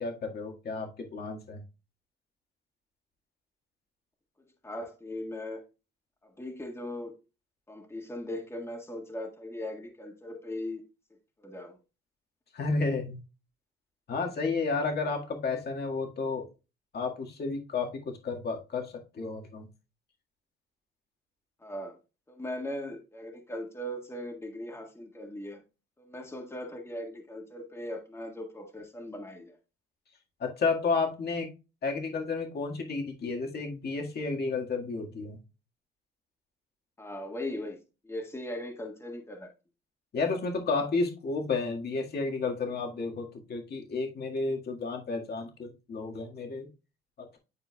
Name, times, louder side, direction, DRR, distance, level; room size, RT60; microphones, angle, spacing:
voice 1, 0.0-1.6 12.5-13.2 14.1-16.5 16.9-19.7 30.4-31.5 31.8-35.4 40.1-46.7 47.2-47.4, left 4 dB, 55° left, 1 dB, 1.8 m, -32 dB
voice 2, 4.6-5.6 6.2-7.1 7.7-10.8 11.4-11.8 21.6-22.0 22.3-25.6 26.0-29.6 37.0-39.5, left 1 dB, 15° left, 1 dB, 1.6 m, -39 dB
10.0 x 4.5 x 2.3 m, 0.29 s
cardioid pair, 90°, 20 cm